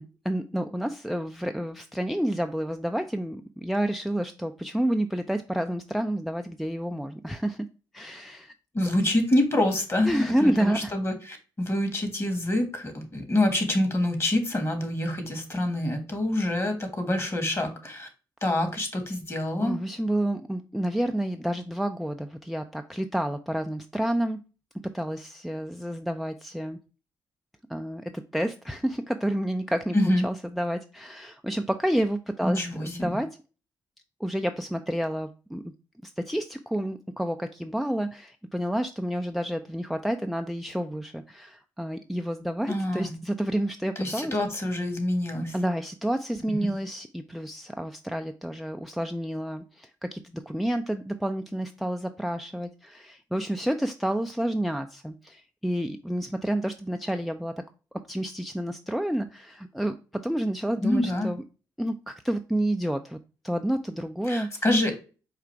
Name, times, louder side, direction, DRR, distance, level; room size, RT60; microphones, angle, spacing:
voice 1, 0.0-7.7 7.9-8.5 10.0-10.9 19.6-24.4 24.9-26.8 27.7-30.0 30.2-33.4 34.2-35.6 36.0-44.3 45.5-57.5 58.1-61.4 61.8-63.2 63.4-64.5, right 1 dB, ahead, 7 dB, 0.4 m, -29 dB
voice 2, 8.7-18.1 18.4-19.8 29.9-30.2 32.4-33.2 42.7-43.2 43.9-45.5 46.5-46.7 60.8-61.3 64.3-64.9, left 1 dB, 30° left, 7 dB, 1.6 m, -26 dB
4.9 x 2.4 x 4.5 m, 0.34 s
supercardioid pair, 65°, 9 cm